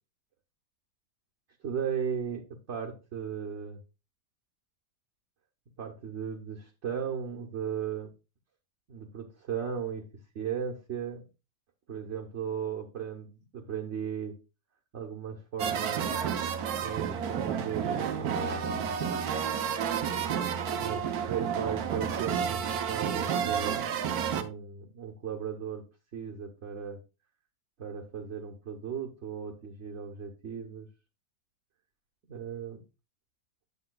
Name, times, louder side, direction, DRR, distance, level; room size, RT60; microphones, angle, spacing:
voice 1, 1.6-3.8 5.8-8.1 8.9-10.1 10.3-11.2 11.9-13.3 13.5-14.4 14.9-16.2 16.8-19.1 20.8-25.8 26.1-27.0 27.8-30.9 32.3-32.8, right 7 dB, 55° right, 0 dB, 1.1 m, -36 dB
sound 1, 15.6-24.4, right 7 dB, 85° right, 1.3 m, -30 dB
9.6 x 7.1 x 2.2 m, 0.29 s
omnidirectional pair, 1.6 m